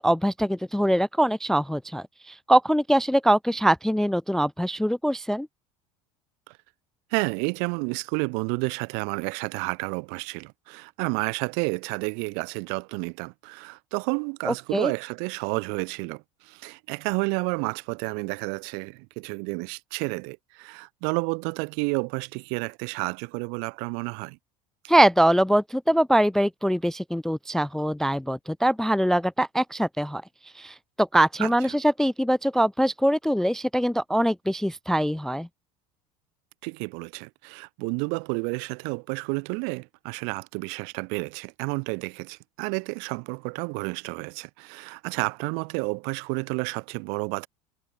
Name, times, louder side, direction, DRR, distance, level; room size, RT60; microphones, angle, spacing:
voice 1, 0.0-5.5 14.4-14.9 24.9-30.2 30.6-35.5, right 1 dB, ahead, 0.3 m, -23 dB
voice 2, 7.1-24.4 31.4-31.5 36.6-47.5, right 40 dB or more, 65° right, 2.4 m, -30 dB
hypercardioid pair, 75°, 18 cm